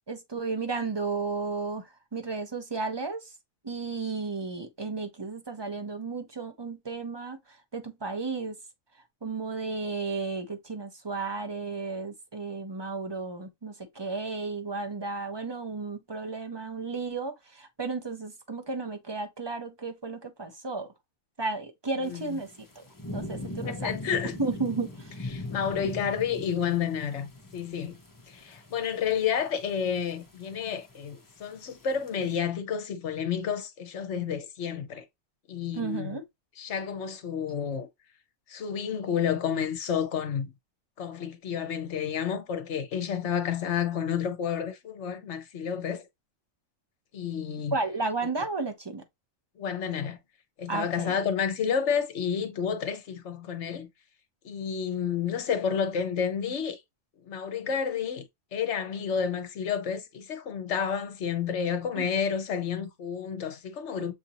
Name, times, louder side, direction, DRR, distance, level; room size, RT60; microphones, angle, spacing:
voice 1, 0.1-1.8 2.1-3.2 3.6-7.4 7.7-8.6 9.2-20.9 21.4-22.5 22.8-22.9 23.1-23.9 24.4-25.1 35.7-36.2 47.7-49.0 50.7-51.2 62.0-62.1, right 3 dB, 30° right, 0.5 m, -33 dB
voice 2, 22.0-22.4 23.6-24.3 25.3-28.0 28.3-35.0 35.5-36.2 36.6-37.9 38.5-40.5 41.0-46.0 47.1-47.8 49.6-50.2 50.6-53.9 54.4-56.8 57.2-58.3 58.5-64.1, left 7 dB, 60° left, 1.1 m, -30 dB
sound 1, 22.0-32.4, left 2 dB, 20° left, 0.7 m, -41 dB
7.2 x 2.7 x 2.8 m
omnidirectional pair, 1.4 m